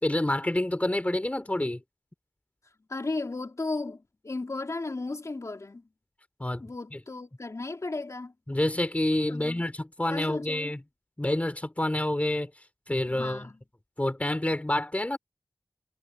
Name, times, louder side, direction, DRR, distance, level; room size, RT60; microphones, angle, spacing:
voice 1, 0.0-1.8 6.4-7.0 8.5-10.8 11.2-12.5 12.9-13.5 14.0-15.2, left 1 dB, 25° left, 3.6 m, -28 dB
voice 2, 2.9-5.8 6.6-8.3 9.3-9.6 10.1-10.7 13.1-13.6, left 3 dB, 65° left, 3.5 m, -35 dB
wide cardioid pair, 50°, 6 cm